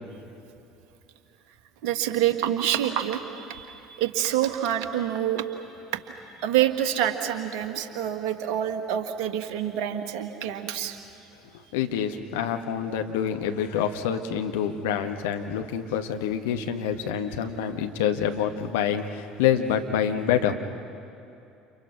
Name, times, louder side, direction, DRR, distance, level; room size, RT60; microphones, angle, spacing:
voice 1, 1.8-5.5 6.4-11.0, right 11 dB, 60° right, 7 dB, 1.8 m, -27 dB
voice 2, 11.7-20.5, left 8 dB, 65° left, 5 dB, 1.6 m, -27 dB
30.0 x 29.5 x 6.2 m, 2.8 s
figure-of-eight pair, 60°, 0 cm